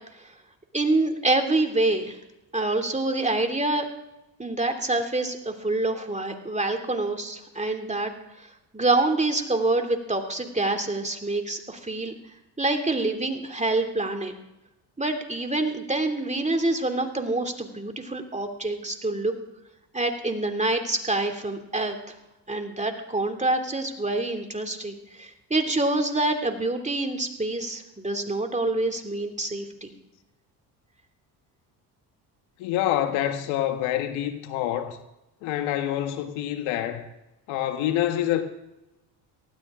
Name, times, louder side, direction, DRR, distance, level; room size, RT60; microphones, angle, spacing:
voice 1, 0.7-2.2 2.5-3.9 4.4-8.1 8.4-8.5 8.7-12.1 12.6-14.3 15.0-19.3 19.9-22.2 22.5-29.9, right 2 dB, 15° right, 2.8 m, -26 dB
voice 2, 32.6-35.0 35.4-37.1 37.5-38.4, left 12 dB, 80° left, 1.6 m, -26 dB
19.0 x 15.5 x 3.7 m
supercardioid pair, 70°, 47 cm